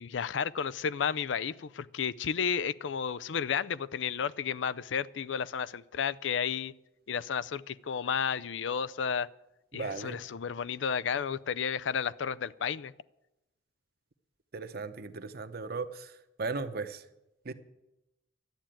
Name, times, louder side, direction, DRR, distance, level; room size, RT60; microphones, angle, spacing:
voice 1, 0.0-6.7 7.1-9.3 9.7-12.9, left 7 dB, 85° left, 0.5 m, -32 dB
voice 2, 9.7-10.2 14.5-17.0 17.4-17.5, right 4 dB, 55° right, 0.9 m, -37 dB
12.0 x 8.8 x 9.0 m
head